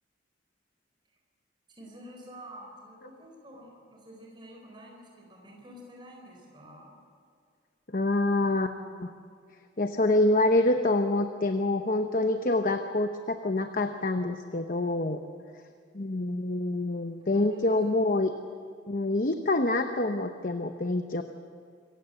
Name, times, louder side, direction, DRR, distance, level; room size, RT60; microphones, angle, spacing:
voice 1, 1.7-7.0 17.3-17.8, equal, 25° right, -1 dB, 4.3 m, -49 dB
voice 2, 7.9-9.1 9.8-15.2 15.9-18.3 18.9-21.2, left 2 dB, 45° left, 7 dB, 0.9 m, -26 dB
26.0 x 16.0 x 7.9 m, 2.2 s
head